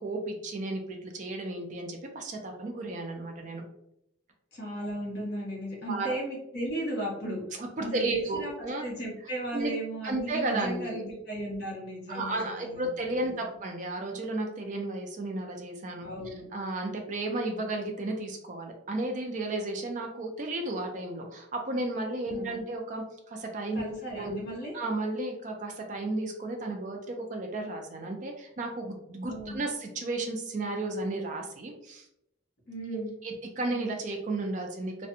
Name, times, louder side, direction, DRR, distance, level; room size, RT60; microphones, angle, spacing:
voice 1, 0.0-3.6 5.9-6.1 7.6-8.8 9.5-9.7 10.0-11.1 12.1-16.1 16.5-23.8 24.1-24.4 24.7-32.1 33.2-35.1, right 2 dB, 40° right, 2 dB, 0.3 m, -33 dB
voice 2, 4.5-7.4 7.8-8.5 8.8-12.9 16.0-16.4 22.3-22.6 23.7-24.7 29.3-29.6 32.7-33.1, right 1 dB, 55° left, -3 dB, 1.1 m, -36 dB
2.5 x 2.1 x 2.7 m, 0.80 s
head